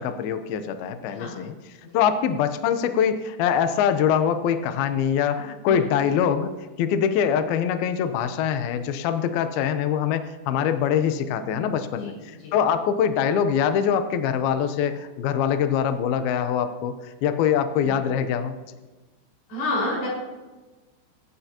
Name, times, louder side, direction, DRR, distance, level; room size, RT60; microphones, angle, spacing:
voice 1, 0.0-1.5 1.9-6.5 6.8-12.1 12.5-18.5, left 8 dB, 90° left, 9 dB, 2.1 m, -23 dB
voice 2, 19.5-20.1, left 2 dB, 55° left, -4 dB, 7.0 m, -28 dB
23.5 x 11.5 x 2.9 m, 1.2 s
omnidirectional pair, 5.5 m